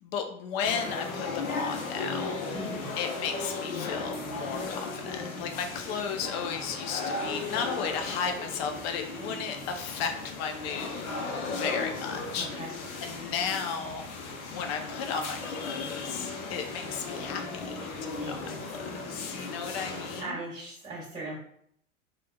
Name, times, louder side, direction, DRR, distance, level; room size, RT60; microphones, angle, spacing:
voice 1, 0.0-2.6 3.0-12.7 13.0-14.2 14.5-18.5 19.1-20.4, left 6 dB, 50° left, 5 dB, 0.6 m, -34 dB
sound 1, 0.6-20.2, left 3 dB, 80° left, 0.7 m, -36 dB
voice 2, 2.5-2.9 12.4-12.7 18.2-18.6 19.3-19.6 20.2-21.3, right 2 dB, 15° right, -9 dB, 1.4 m, -39 dB
3.3 x 2.4 x 2.2 m, 0.67 s
hypercardioid pair, 105°, 41 cm